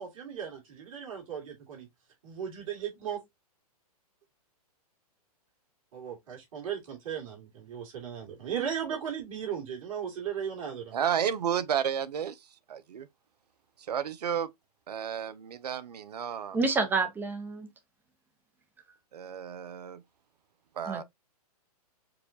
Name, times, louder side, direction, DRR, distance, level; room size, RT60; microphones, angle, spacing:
voice 1, 0.0-1.9 2.2-3.2 5.9-11.0, right 8 dB, 60° right, 2.2 m, -36 dB
voice 2, 10.9-12.4 12.7-13.1 13.9-14.5 14.9-16.6 19.1-20.0 20.8-21.0, right 8 dB, 85° right, 0.5 m, -32 dB
voice 3, 16.5-17.7 20.9-21.0, right 4 dB, 10° right, 0.6 m, -28 dB
4.7 x 2.3 x 2.6 m
hypercardioid pair, 130°, 20 cm